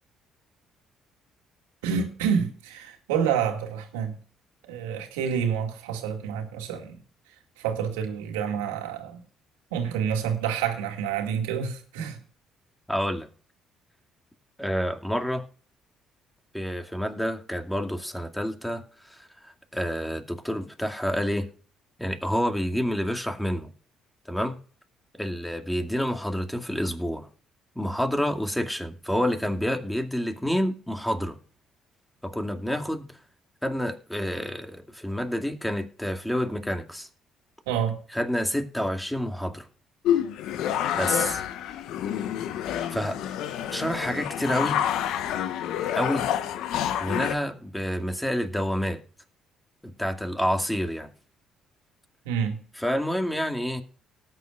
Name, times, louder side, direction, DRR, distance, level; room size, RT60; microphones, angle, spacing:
voice 1, 1.8-4.2 4.6-7.0 7.6-9.2 9.7-12.2 37.7-38.0 52.3-52.6, right 7 dB, 85° right, 4 dB, 2.3 m, -28 dB
voice 2, 12.9-13.3 14.6-15.4 16.5-18.8 19.1-21.5 22.0-23.7 24.3-24.5 25.1-27.3 27.8-31.4 32.2-33.1 33.6-37.1 38.1-39.7 40.9-41.4 42.9-43.2 43.7-44.8 45.9-46.3 47.0-49.0 49.8-51.1 52.8-53.8, equal, 5° left, 5 dB, 2.3 m, -28 dB
sound 1, 40.0-47.4, left 10 dB, 70° left, 1.0 m, -28 dB
18.5 x 9.2 x 2.4 m, 0.42 s
hypercardioid pair, 55°, 0 cm